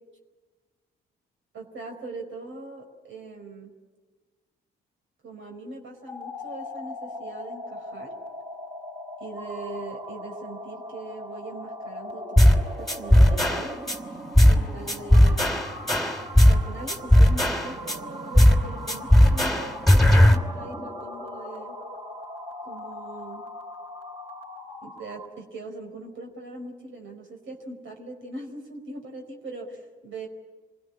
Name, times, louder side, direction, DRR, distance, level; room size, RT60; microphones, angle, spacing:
voice 1, 1.5-3.7 5.2-8.1 9.2-13.8 14.4-15.6 16.5-21.8 22.6-23.5 24.8-30.3, right 2 dB, 65° right, 1 dB, 4.9 m, -40 dB
sound 1, 6.0-25.4, left 1 dB, 30° right, 5.7 m, -39 dB
sound 2, 12.4-12.6 12.9-14.0 14.4-14.6 14.9-16.6 16.9-18.0 18.4-18.6 18.9-20.4, left 1 dB, ahead, 3.1 m, -16 dB
26.5 x 17.0 x 10.0 m, 1.3 s
hypercardioid pair, 50°, 21 cm